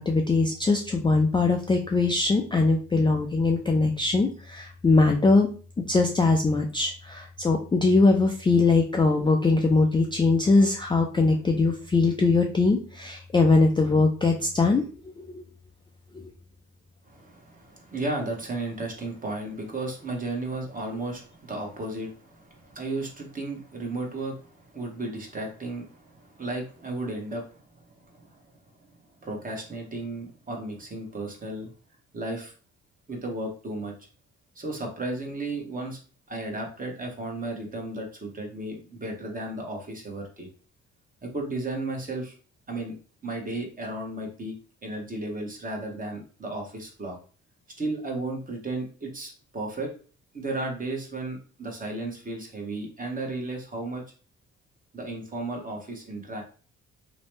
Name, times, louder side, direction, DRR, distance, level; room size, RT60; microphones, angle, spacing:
voice 1, 0.0-5.5 5.9-14.8 15.2-15.4 16.1-16.2, left 3 dB, 15° left, 2 dB, 0.3 m, -22 dB
voice 2, 17.0-27.6 28.0-28.4 29.2-31.7 32.1-32.5 33.1-33.9 34.6-36.0 36.3-40.5 41.2-42.3 42.7-43.0 43.2-44.5 44.8-47.2 47.8-49.9 50.3-54.0 54.9-56.4, right 2 dB, 30° right, 1 dB, 1.0 m, -34 dB
2.9 x 2.1 x 3.1 m, 0.39 s
cardioid pair, 90°, 30 cm